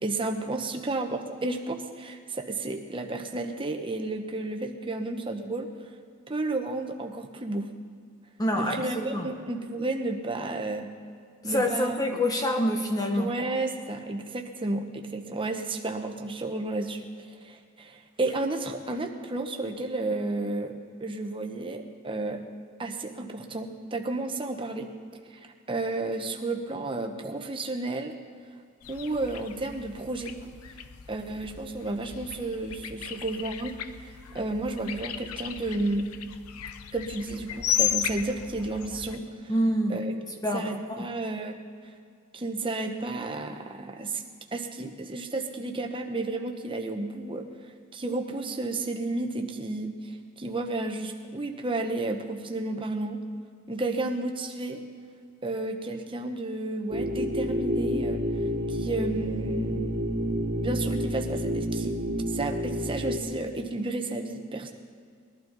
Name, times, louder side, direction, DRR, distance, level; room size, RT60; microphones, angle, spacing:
voice 1, 0.0-5.7 6.3-7.7 8.5-10.9 11.4-12.2 13.1-17.0 17.4-20.7 21.0-22.4 22.8-24.9 25.3-28.1 28.9-30.3 31.1-36.1 36.9-39.5 39.9-40.1 40.5-41.6 42.3-44.2 44.5-47.5 47.9-49.9 50.4-53.2 53.7-54.8 55.4-58.2 58.7-59.8 60.6-62.0 62.2-64.7, right 2 dB, 25° right, 4 dB, 1.0 m, -32 dB
voice 2, 8.4-9.3 11.4-13.3 39.5-40.0 40.4-41.1, equal, 15° left, 3 dB, 0.7 m, -27 dB
sound 1, 28.8-39.2, left 9 dB, 85° left, 0.7 m, -35 dB
sound 2, 56.9-63.2, equal, 50° right, 1.1 m, -29 dB
20.5 x 12.0 x 4.0 m, 2.2 s
head